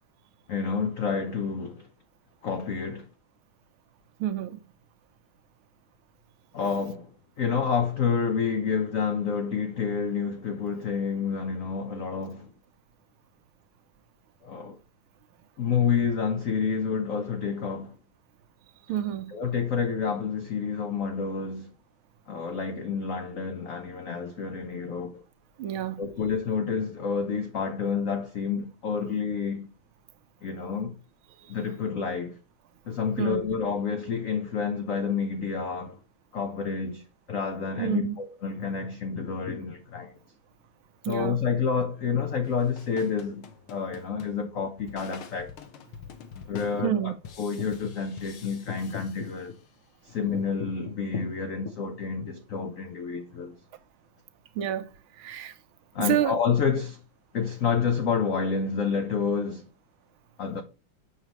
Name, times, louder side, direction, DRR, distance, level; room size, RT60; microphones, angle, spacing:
voice 1, 0.5-1.9 2.4-3.1 6.5-7.1 7.4-12.5 14.4-14.8 15.6-17.9 19.3-21.7 22.3-25.2 26.0-29.7 30.4-30.9 31.5-32.4 32.9-36.0 36.3-40.1 41.0-45.5 46.5-49.5 50.0-53.5 55.9-57.0 57.3-59.7 60.4-60.6, left 6 dB, 60° left, 0.9 m, -29 dB
voice 2, 4.2-4.6 18.9-19.3 25.6-26.0 33.2-33.4 37.8-38.2 41.0-41.4 46.8-47.1 54.6-54.9 55.2-55.5 56.0-56.3, right 11 dB, 80° right, 1.6 m, -28 dB
sound 1, 42.4-49.9, left 7 dB, 85° left, 2.0 m, -47 dB
7.2 x 6.6 x 3.0 m
omnidirectional pair, 2.3 m